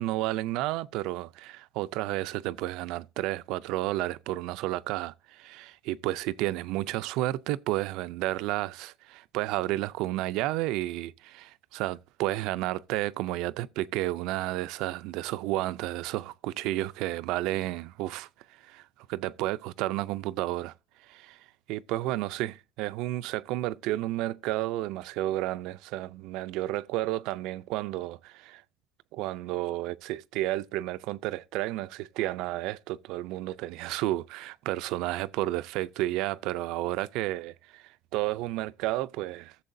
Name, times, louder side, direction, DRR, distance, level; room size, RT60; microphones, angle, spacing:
voice 1, 0.0-18.3 18.6-20.7 21.1-28.6 29.1-39.6, right 16 dB, 70° right, 0.4 m, -32 dB
16.0 x 7.1 x 2.6 m
cardioid pair, 175°, 0 cm